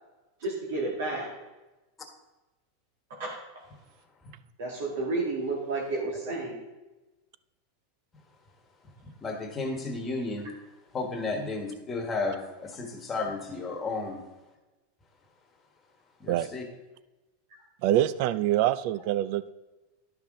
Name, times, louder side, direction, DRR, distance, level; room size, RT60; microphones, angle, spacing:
voice 1, 0.4-1.3 3.2-3.3 4.6-6.6, right 3 dB, 75° right, -3 dB, 2.1 m, -31 dB
voice 2, 9.2-10.5 10.9-14.2 16.2-16.6, left 3 dB, 15° left, 2 dB, 1.5 m, -33 dB
voice 3, 17.8-19.5, right 13 dB, 55° right, 16 dB, 0.4 m, -25 dB
11.5 x 5.8 x 3.8 m, 1.1 s
supercardioid pair, 150°, 0 cm